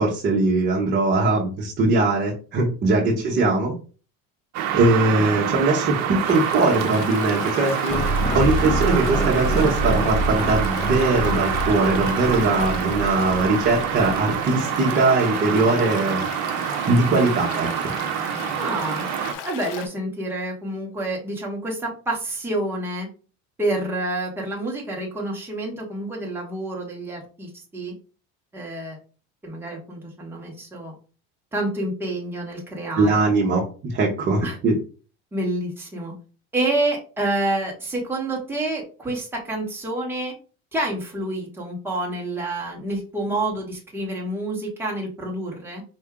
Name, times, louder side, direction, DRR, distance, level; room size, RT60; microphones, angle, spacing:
voice 1, 0.0-3.7 4.7-8.0 8.3-16.2 16.9-17.9 33.0-34.8, right 2 dB, 35° right, -2 dB, 1.0 m, -21 dB
sound 1, 4.5-19.3, right 9 dB, 60° right, 0.8 m, -27 dB
Stream, 6.2-19.9, left 8 dB, 70° left, 0.8 m, -37 dB
sound 2, 7.9-14.3, right 1 dB, 15° left, 0.4 m, -26 dB
voice 2, 18.6-19.0 19.4-23.1 23.6-27.9 28.5-29.0 29.4-30.9 31.5-33.2 34.4-34.6 35.3-36.1 36.5-40.3 40.7-45.8, right 1 dB, 5° right, -2 dB, 1.3 m, -28 dB
4.5 x 2.6 x 3.6 m, 0.37 s
cardioid pair, 145°, 31 cm